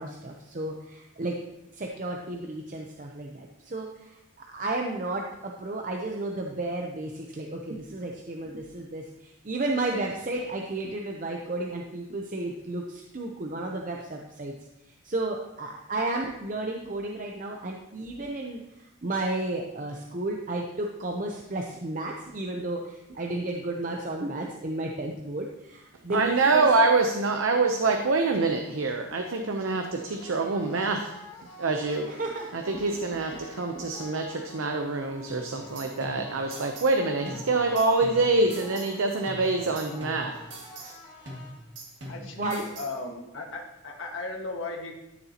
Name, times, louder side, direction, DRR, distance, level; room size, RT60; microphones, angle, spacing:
voice 1, 0.0-1.4 1.7-4.2 4.5-14.5 15.0-26.7 32.1-32.8 33.3-33.8 42.0-42.7, right 2 dB, 40° right, 1 dB, 0.6 m, -33 dB
voice 2, 26.1-31.1 31.6-32.1 32.5-40.4 40.8-40.9, right 3 dB, 85° right, 4 dB, 0.7 m, -25 dB
sound 1, 30.0-42.0, left 1 dB, 40° left, 2.2 m, -48 dB
sound 2, 35.3-37.0 37.3-39.0 39.3-41.0 41.3-43.0, right 1 dB, 60° right, 2.0 m, -43 dB
voice 3, 42.1-44.9, left 2 dB, 75° left, 1 dB, 1.5 m, -36 dB
13.0 x 7.0 x 2.9 m, 0.91 s
head